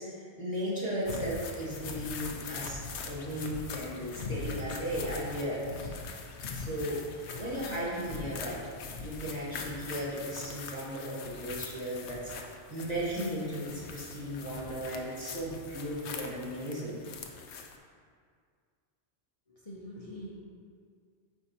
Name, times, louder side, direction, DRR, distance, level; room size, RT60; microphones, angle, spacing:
voice 1, 0.0-5.9 6.5-7.0 7.4-8.6 9.0-12.3 12.7-17.0, equal, 35° right, -8 dB, 1.7 m, -36 dB
sound 1, 1.0-17.8, left 4 dB, 70° left, 0.9 m, -42 dB
voice 2, 19.5-20.3, equal, 35° left, -7 dB, 0.7 m, -44 dB
9.5 x 4.4 x 2.8 m, 2.1 s
omnidirectional pair, 1.3 m